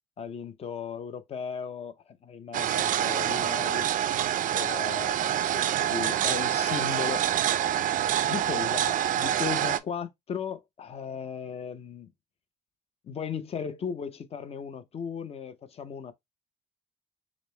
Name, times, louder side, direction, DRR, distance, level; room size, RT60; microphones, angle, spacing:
voice 1, 0.2-3.9 4.5-7.2 8.3-12.1 13.0-16.1, left 7 dB, 35° left, 0.6 m, -36 dB
sound 1, 2.5-9.8, right 11 dB, 50° right, 0.4 m, -26 dB
5.0 x 2.1 x 3.1 m
cardioid pair, 110°, 17 cm